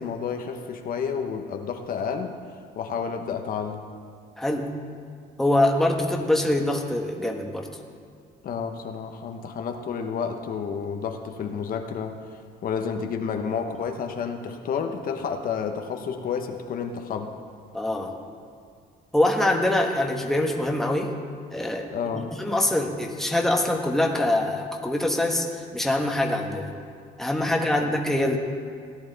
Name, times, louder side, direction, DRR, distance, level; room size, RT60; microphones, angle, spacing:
voice 1, 0.0-2.3 2.8-3.8 8.4-12.1 12.6-17.3 21.9-22.3 27.8-27.9, left 6 dB, 55° left, 5 dB, 1.0 m, -30 dB
voice 2, 4.4-4.8 5.4-7.7 17.7-18.1 19.1-21.1 21.5-26.7 27.2-28.4, left 1 dB, ahead, 1 dB, 1.2 m, -24 dB
17.0 x 10.5 x 4.0 m, 2.3 s
cardioid pair, 110°, 17 cm